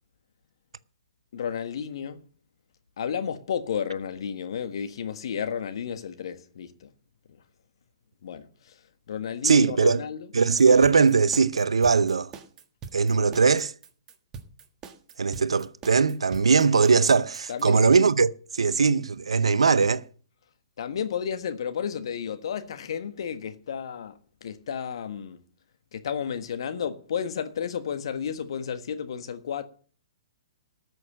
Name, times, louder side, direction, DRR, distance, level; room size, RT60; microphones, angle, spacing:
voice 1, 1.3-2.3 3.0-6.9 8.2-8.8 9.1-10.3 17.5-17.8 20.8-25.4 25.9-29.6, left 7 dB, 65° left, 1.4 m, -32 dB
voice 2, 9.4-10.0 10.3-12.3 12.9-13.7 15.2-20.0, right 5 dB, 80° right, 0.7 m, -20 dB
sound 1, 10.6-17.7, right 5 dB, 25° right, 1.5 m, -43 dB
13.5 x 6.4 x 7.6 m
hypercardioid pair, 125°, 3 cm